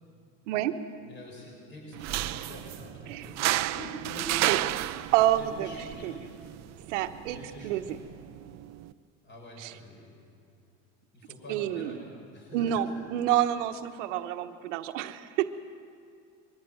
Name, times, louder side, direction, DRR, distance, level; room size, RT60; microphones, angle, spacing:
voice 1, 0.5-0.8 3.1-3.3 4.5-4.6 5.1-5.7 6.0-6.1 6.9-8.0 9.6-9.7 11.5-12.0 12.5-15.5, right 12 dB, 85° right, 8 dB, 1.2 m, -28 dB
voice 2, 1.0-4.6 5.3-6.2 7.2-8.0 9.2-10.1 11.1-12.0 12.3-12.9, equal, 30° left, -1 dB, 6.8 m, -45 dB
sound 1, 1.9-8.9, right 16 dB, 50° right, 0.7 m, -33 dB
22.5 x 15.5 x 9.4 m, 2.4 s
supercardioid pair, 110°, 36 cm